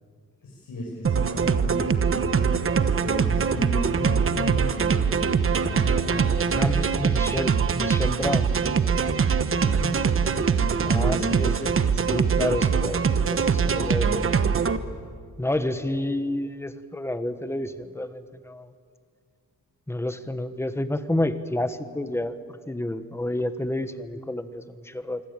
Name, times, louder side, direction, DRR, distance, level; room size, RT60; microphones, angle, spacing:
voice 1, 0.4-6.8 9.6-10.0 10.6-11.3, left 1 dB, 85° left, -3 dB, 6.7 m, -35 dB
sound 1, 1.0-14.8, right 6 dB, 40° right, 1.1 m, -23 dB
voice 2, 6.5-8.5 10.8-14.3 15.4-18.7 19.9-25.2, left 1 dB, 10° left, 10 dB, 1.2 m, -30 dB
25.5 x 25.0 x 8.9 m, 2.1 s
wide cardioid pair, 150°, 33 cm